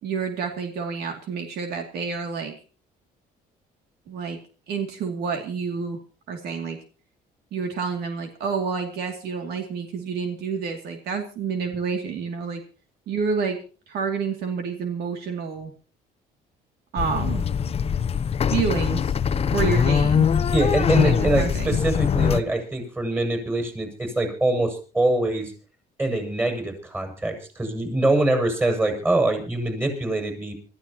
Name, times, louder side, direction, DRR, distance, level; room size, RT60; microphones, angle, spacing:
voice 1, 0.0-2.5 4.1-4.4 4.7-6.0 6.3-6.8 7.5-12.6 13.1-13.6 13.9-15.7 16.9-17.4 18.5-19.1 19.5-20.3 20.9-21.8, right 5 dB, 75° right, 4 dB, 2.7 m, -28 dB
sound 1, 17.0-22.4, left 7 dB, 35° left, 0.8 m, -22 dB
voice 2, 20.5-25.5 26.0-30.5, right 2 dB, 15° right, 5 dB, 6.8 m, -24 dB
25.0 x 14.5 x 3.0 m, 0.37 s
cardioid pair, 110°, 17 cm